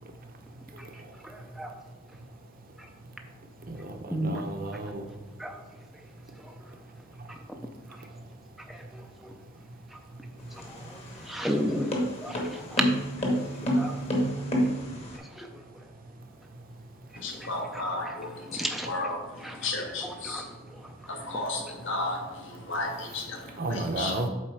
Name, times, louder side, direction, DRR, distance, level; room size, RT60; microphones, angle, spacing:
voice 1, 1.2-1.7 2.8-2.9 4.1-4.4 5.4-5.6 7.3-7.4 8.7-8.8 9.2-9.3 10.7-10.8 11.3-11.9 12.2-12.9 13.3-13.4 13.8-13.9 14.4-14.5 15.4-15.5 17.4-18.1 18.5-18.9 19.4-19.6 20.0-20.4, equal, ahead, 3 dB, 0.5 m, -33 dB
voice 2, 3.7-5.0 23.6-24.3, right 2 dB, 45° right, 5 dB, 0.8 m, -33 dB
sound 1, 10.4-15.2, equal, 30° left, 1.2 m, -29 dB
voice 3, 17.2-20.5 21.1-24.3, left 2 dB, 65° left, 1 dB, 1.4 m, -34 dB
7.5 x 4.1 x 4.7 m, 1.2 s
head